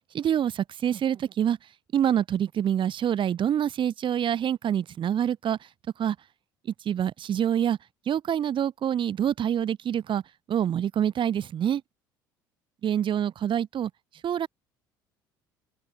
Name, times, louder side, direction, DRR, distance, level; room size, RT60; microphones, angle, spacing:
voice 1, 0.1-1.6 1.9-5.6 6.0-6.2 6.6-7.8 8.1-10.2 10.5-11.8 12.8-13.9 14.2-14.5, right 9 dB, 45° right, 6.8 m, -26 dB
figure-of-eight pair, 60°, 11 cm